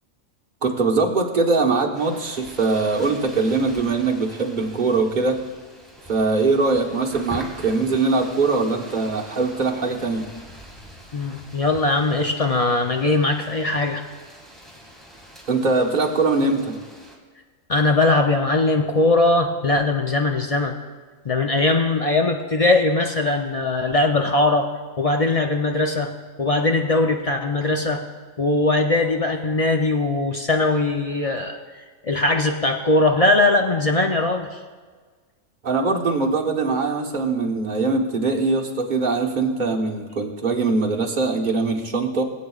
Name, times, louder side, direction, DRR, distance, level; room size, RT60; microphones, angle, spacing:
voice 1, 0.6-5.4 6.1-10.3 15.5-16.8 35.6-42.2, right 3 dB, 40° right, 0 dB, 1.2 m, -22 dB
sound 1, 1.9-17.2, equal, ahead, 1.8 m, -44 dB
voice 2, 11.1-14.1 17.7-20.8 21.3-24.7 25.0-26.1 26.4-28.0 28.4-31.6 32.0-34.6, left 2 dB, 50° left, 3 dB, 0.4 m, -20 dB
21.0 x 8.5 x 2.4 m, 1.5 s
omnidirectional pair, 1.4 m